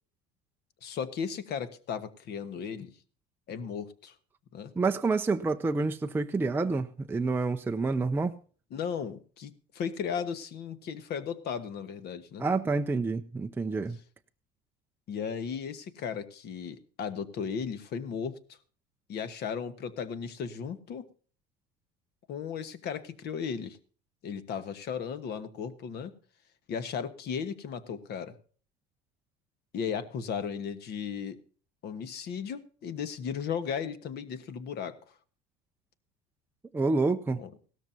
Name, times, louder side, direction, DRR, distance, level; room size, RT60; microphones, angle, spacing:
voice 1, 0.8-2.9 3.5-4.1 4.5-4.7 8.7-12.5 15.1-18.6 19.1-21.0 22.3-23.8 24.2-26.1 26.7-28.4 29.7-31.4 31.8-35.0 37.4-37.5, left 7 dB, 50° left, 1.3 m, -35 dB
voice 2, 4.8-8.3 12.4-14.0 36.7-37.4, right 3 dB, 10° right, 0.5 m, -28 dB
17.0 x 13.0 x 2.7 m
supercardioid pair, 110°, 21 cm